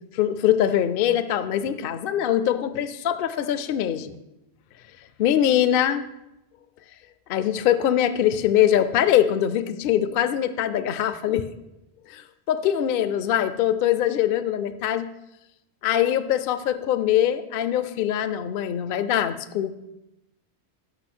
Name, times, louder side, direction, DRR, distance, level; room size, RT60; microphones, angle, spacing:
voice 1, 0.1-4.1 5.2-6.1 7.3-11.5 12.1-15.1 15.8-19.7, left 10 dB, 60° left, 13 dB, 0.7 m, -23 dB
12.0 x 5.1 x 6.1 m, 0.92 s
omnidirectional pair, 1.1 m